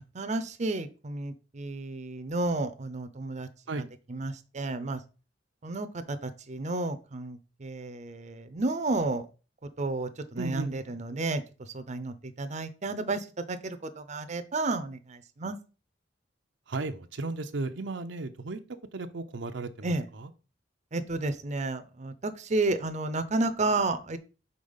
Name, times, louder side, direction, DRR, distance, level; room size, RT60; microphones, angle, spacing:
voice 1, 0.0-3.5 4.1-5.0 5.6-9.2 9.8-11.4 11.7-15.5 19.8-20.0 20.9-24.2, right 2 dB, 40° right, 9 dB, 0.6 m, -31 dB
voice 2, 10.4-10.7 16.7-18.6 18.9-20.3, right 3 dB, 80° right, 7 dB, 0.6 m, -35 dB
5.1 x 4.3 x 5.5 m, 0.34 s
head